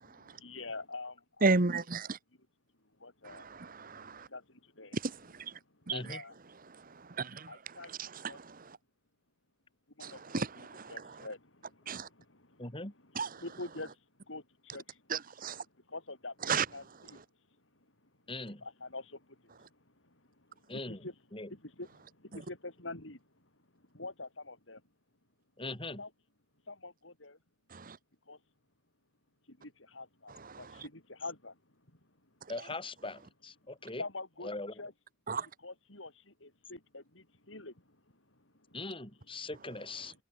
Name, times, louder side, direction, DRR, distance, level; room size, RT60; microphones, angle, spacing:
voice 1, 0.0-1.6 3.0-3.5 3.9-5.0 5.8-6.3 7.5-7.9 8.2-8.4 10.0-12.7 13.4-14.0 14.2-15.0 15.9-17.2 18.6-19.4 19.7-19.8 20.0-21.1 21.5-23.2 23.7-24.8 26.0-26.1 26.7-27.4 28.3-28.4 29.5-31.6 34.0-34.5 34.8-34.9 35.6-38.0 38.3-38.8, left 2 dB, 90° left, 8.0 m, -46 dB
voice 2, 1.4-2.2 3.2-4.3 5.0-5.1 5.9-6.0 7.2-7.5 8.0-8.1 8.3-8.6 10.0-10.8 11.9-12.1 13.2-13.3 15.1-15.6 16.5-16.6 27.7-28.0 30.5-30.6 35.3-35.5, right 4 dB, 45° right, 1.2 m, -32 dB
voice 3, 5.9-6.2 12.6-12.9 18.3-18.6 20.7-21.0 21.3-21.5 25.6-26.0 32.5-34.0 34.4-34.8 38.7-40.1, left 2 dB, 30° left, 6.1 m, -41 dB
head